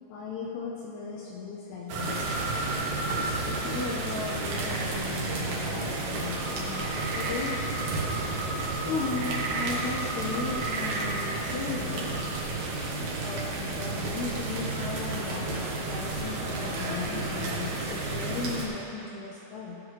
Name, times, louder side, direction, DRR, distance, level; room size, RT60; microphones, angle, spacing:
voice 1, 0.1-2.2 3.2-7.7 8.8-12.2 13.2-19.8, left 4 dB, 90° left, -3 dB, 2.3 m, -36 dB
sound 1, 1.9-18.7, right 2 dB, 85° right, 1.7 m, -31 dB
17.0 x 8.0 x 3.1 m, 2.9 s
omnidirectional pair, 5.6 m